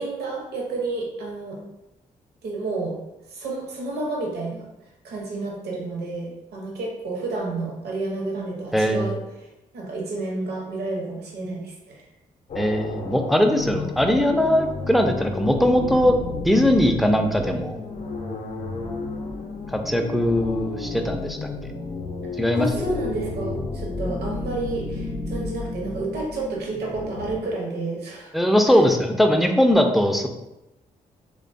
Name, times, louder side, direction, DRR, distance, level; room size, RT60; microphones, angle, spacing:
voice 1, 0.0-1.6 2.4-3.0 3.3-4.7 5.0-9.2 9.7-12.0 22.5-28.3 28.7-28.8, right 2 dB, 65° right, -1 dB, 0.8 m, -30 dB
voice 2, 8.7-9.1 12.6-16.1 16.4-17.8 19.7-21.4 22.4-22.7 28.3-30.3, equal, ahead, 4 dB, 0.4 m, -20 dB
sound 1, 12.5-27.4, left 3 dB, 45° left, 0.5 m, -32 dB
3.2 x 2.2 x 2.5 m, 0.94 s
hypercardioid pair, 40°, 18 cm